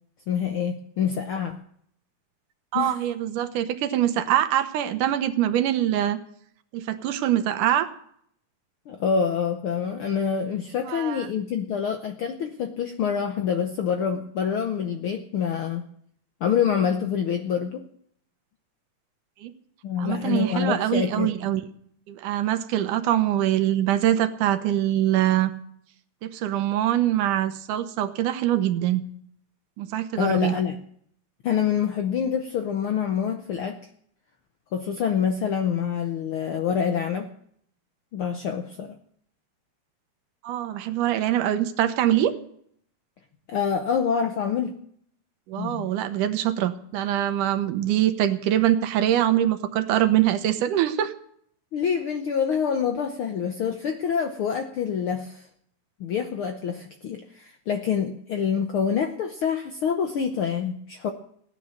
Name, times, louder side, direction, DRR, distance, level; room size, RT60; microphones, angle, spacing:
voice 1, 0.3-1.6 2.7-2.9 8.9-15.8 16.4-17.8 19.8-21.3 30.2-30.8 31.4-33.8 34.7-37.3 38.1-39.0 43.5-44.7 45.6-45.9 51.7-55.5 56.0-61.1, left 7 dB, 75° left, 6 dB, 1.2 m, -26 dB
voice 2, 2.7-6.2 6.7-7.9 10.9-11.3 19.4-19.5 20.0-21.6 22.1-25.5 26.2-29.0 29.8-30.5 40.4-42.3 45.5-51.1, right 12 dB, 85° right, 10 dB, 2.5 m, -23 dB
16.0 x 10.0 x 6.4 m, 0.66 s
omnidirectional pair, 3.5 m